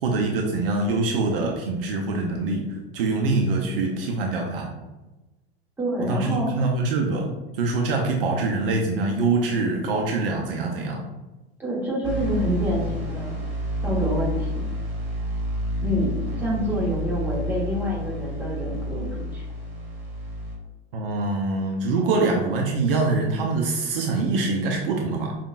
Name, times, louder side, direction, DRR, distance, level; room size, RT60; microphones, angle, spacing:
voice 1, 0.0-2.7 2.9-4.7 6.0-11.0 20.9-25.4, right 3 dB, 60° right, 1 dB, 0.6 m, -24 dB
voice 2, 5.8-6.5 11.6-13.4 13.8-14.6 15.8-19.4, equal, 5° right, -5 dB, 1.1 m, -27 dB
sound 1, 12.0-20.6, equal, 40° right, 1.3 m, -29 dB
5.1 x 2.5 x 2.3 m, 1.1 s
figure-of-eight pair, 80°, 32 cm